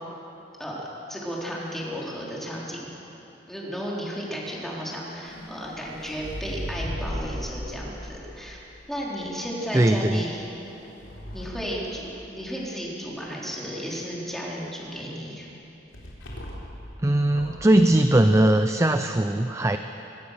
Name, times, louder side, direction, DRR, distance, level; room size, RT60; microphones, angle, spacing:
voice 1, 0.6-2.9 3.5-8.6 8.9-10.4 11.3-15.5, equal, ahead, -5 dB, 4.0 m, -34 dB
sound 1, 5.2-9.3 10.3-12.6 15.9-16.8 17.2-17.7, equal, 75° left, 4.0 m, -37 dB
voice 2, 9.7-10.2 17.0-19.8, right 1 dB, 15° right, 7 dB, 0.6 m, -20 dB
24.5 x 17.0 x 6.7 m, 3.0 s
head